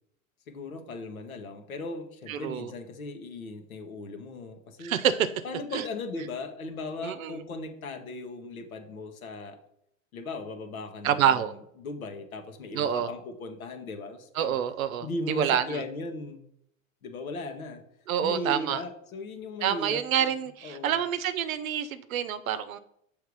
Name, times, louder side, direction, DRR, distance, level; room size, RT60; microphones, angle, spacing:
voice 1, 0.5-4.9 5.4-9.6 10.1-14.6 15.0-16.4 17.0-17.8 18.2-20.3 20.6-21.0, left 2 dB, 85° left, 4 dB, 1.2 m, -38 dB
voice 2, 2.3-2.7 4.8-5.3 5.7-5.8 7.0-7.4 11.0-11.5 12.7-13.1 14.4-15.8 18.1-18.8 19.6-22.8, right 9 dB, 75° right, 13 dB, 0.7 m, -27 dB
6.6 x 3.5 x 4.7 m, 0.74 s
hypercardioid pair, 100°, 41 cm